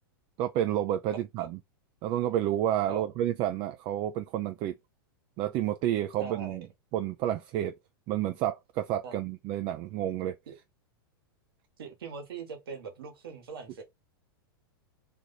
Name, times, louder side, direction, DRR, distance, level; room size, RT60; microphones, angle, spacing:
voice 1, 0.4-1.6 2.0-4.7 5.4-6.6 6.9-7.8 8.1-10.4, right 12 dB, 40° right, 0.4 m, -30 dB
voice 2, 1.1-1.5 2.9-3.0 6.2-6.6 9.0-9.2 10.5-10.6 11.8-13.8, right 5 dB, 75° right, 1.6 m, -41 dB
3.3 x 2.5 x 4.0 m
hypercardioid pair, 120°, 12 cm